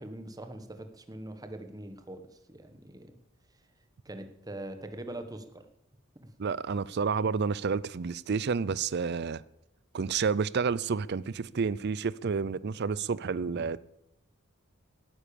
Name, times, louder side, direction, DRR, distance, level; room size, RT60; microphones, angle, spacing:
voice 1, 0.0-3.1 4.0-5.7, right 1 dB, 20° right, 1.4 m, -42 dB
voice 2, 6.4-9.4 9.9-13.8, right 5 dB, 50° right, 0.5 m, -30 dB
17.5 x 9.9 x 7.0 m
head